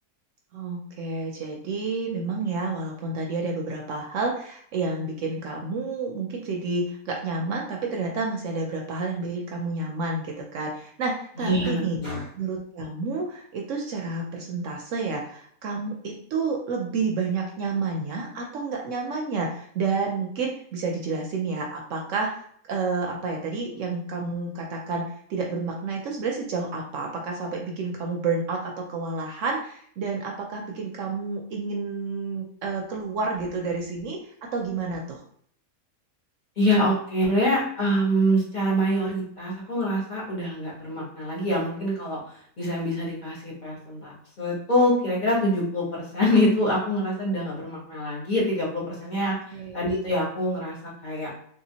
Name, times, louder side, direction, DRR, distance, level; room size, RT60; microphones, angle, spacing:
voice 1, 0.5-12.0 12.3-34.2 34.5-35.2 49.5-49.8, right 4 dB, 70° right, 1 dB, 0.9 m, -30 dB
voice 2, 11.4-12.2 36.6-44.1 44.4-49.3 49.7-50.8 51.0-51.3, equal, 35° left, -6 dB, 1.2 m, -25 dB
3.3 x 2.8 x 2.8 m, 0.62 s
omnidirectional pair, 1.5 m